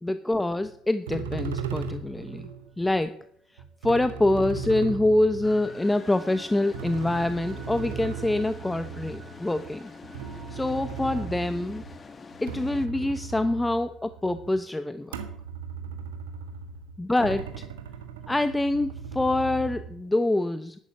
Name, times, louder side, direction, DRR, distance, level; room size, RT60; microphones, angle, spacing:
voice 1, 0.0-2.5 2.8-3.2 3.8-9.9 10.5-11.8 12.4-15.1 17.0-17.6 18.3-20.8, left 2 dB, 10° left, 11 dB, 0.9 m, -25 dB
sound 1, 0.6-0.7 1.1-2.7 3.6-6.1 6.7-12.0 12.3-14.5 15.1-20.1, right 6 dB, 80° right, 1.5 m, -37 dB
sound 2, 2.0-4.7 5.0-14.5, right 3 dB, 35° right, 4.7 m, -53 dB
sound 3, 5.4-12.9, left 4 dB, 30° left, 1.5 m, -45 dB
11.5 x 10.5 x 8.7 m, 0.65 s
hypercardioid pair, 60°, 0 cm